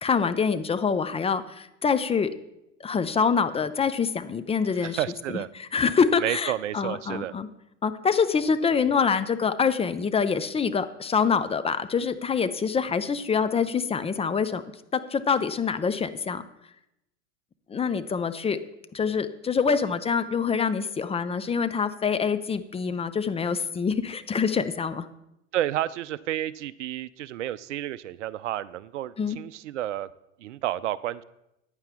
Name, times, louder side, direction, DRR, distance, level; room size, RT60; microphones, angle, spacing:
voice 1, 0.0-2.3 2.8-5.0 5.3-7.5 7.8-14.6 14.9-16.5 17.7-18.6 18.9-25.1 29.2-29.4, left 6 dB, 15° left, 11 dB, 0.6 m, -25 dB
voice 2, 4.8-5.5 6.2-7.3 25.5-30.1 30.4-31.2, right 13 dB, 65° right, 17 dB, 0.6 m, -31 dB
14.5 x 9.9 x 3.6 m, 0.85 s
figure-of-eight pair, 85°, 38 cm